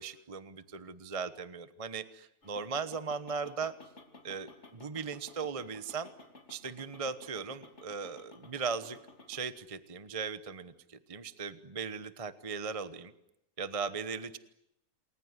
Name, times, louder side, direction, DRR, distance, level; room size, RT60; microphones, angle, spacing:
voice 1, 0.0-3.7 4.2-6.1 6.5-9.0 9.3-13.1 13.6-14.4, right 5 dB, 25° right, 13 dB, 0.9 m, -38 dB
sound 1, 2.4-9.5, left 2 dB, 45° left, 3.3 m, -55 dB
28.5 x 21.0 x 9.7 m, 0.84 s
omnidirectional pair, 1.7 m